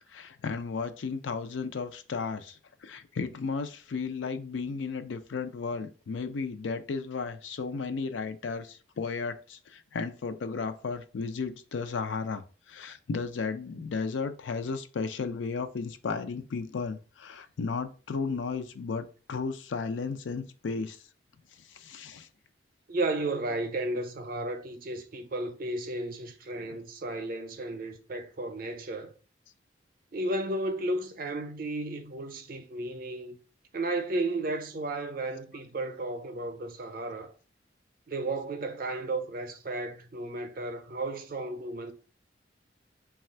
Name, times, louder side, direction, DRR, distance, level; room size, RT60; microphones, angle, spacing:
voice 1, 0.1-21.0 21.7-22.3, left 4 dB, 90° left, 0.4 m, -34 dB
voice 2, 22.9-29.1 30.1-33.4 33.7-37.3 38.1-41.9, right 2 dB, 50° right, 0.5 m, -33 dB
3.2 x 2.3 x 4.3 m
head